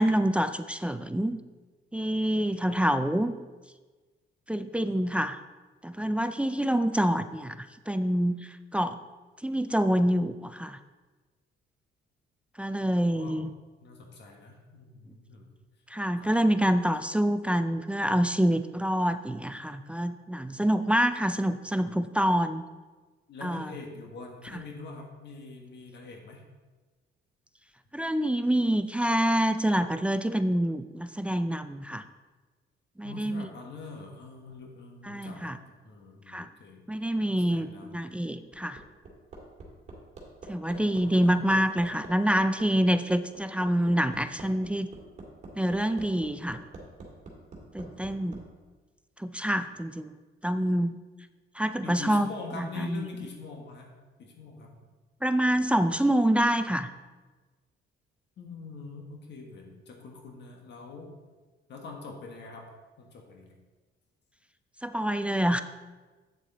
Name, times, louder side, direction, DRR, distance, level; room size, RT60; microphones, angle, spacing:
voice 1, 0.0-1.4 1.9-3.3 4.5-5.4 5.8-9.0 9.4-10.8 12.6-13.5 15.9-22.6 23.4-23.7 24.5-24.6 27.9-32.0 33.0-33.5 35.0-35.6 36.3-36.5 36.9-38.8 40.5-44.9 45.6-46.6 47.7-48.4 49.2-50.1 50.4-50.9 51.6-52.3 52.6-53.0 55.2-56.9 64.8-65.6, right 1 dB, 5° right, 10 dB, 0.3 m, -26 dB
voice 2, 13.1-13.4 13.8-15.5 16.2-16.3 16.6-16.7 23.3-26.4 33.0-36.8 37.3-38.0 40.7-41.4 51.8-53.9 54.2-54.8 58.4-61.1 61.7-62.6 63.0-63.6, left 4 dB, 60° left, 1 dB, 1.6 m, -44 dB
Hammer, 38.5-48.4 49.8-49.9, right 3 dB, 35° right, 2.3 m, -45 dB
8.4 x 7.5 x 4.0 m, 1.3 s
cardioid pair, 115°, 21 cm